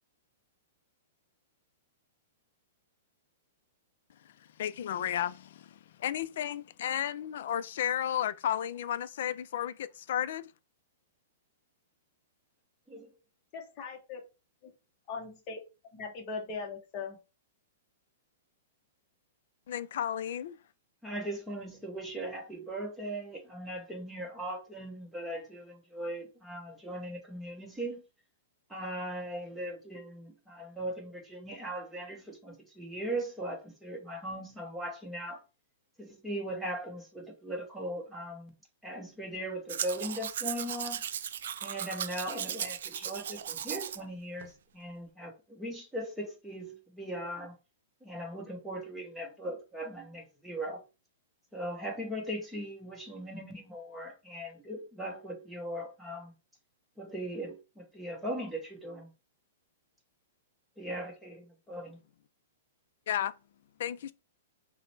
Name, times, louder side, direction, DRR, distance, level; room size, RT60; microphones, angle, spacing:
voice 1, 4.6-10.5 19.7-20.6 63.1-63.3 63.8-64.1, left 10 dB, 60° left, 0.3 m, -33 dB
voice 2, 13.5-14.2 14.6-14.7 15.1-15.6 15.9-17.2, left 4 dB, 30° left, 0.7 m, -39 dB
voice 3, 21.0-28.0 28.7-35.4 36.0-38.5 38.8-41.0 41.6-47.5 48.0-50.8 51.5-56.3 57.0-59.1 60.8-62.0, right 1 dB, 5° right, 0.9 m, -39 dB
Domestic sounds home sounds, 39.7-44.0 44.4-44.5, right 9 dB, 70° right, 0.3 m, -37 dB
5.6 x 2.1 x 3.2 m
hypercardioid pair, 160°, 0 cm